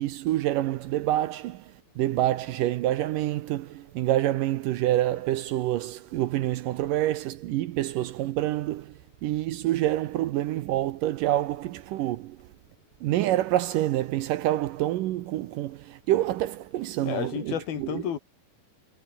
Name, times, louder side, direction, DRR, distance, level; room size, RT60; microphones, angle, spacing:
voice 1, 0.0-12.5 13.0-18.0, right 14 dB, 75° right, 2.2 m, -27 dB
voice 2, 17.0-18.2, left 9 dB, 75° left, 4.3 m, -31 dB
omnidirectional pair, 4.4 m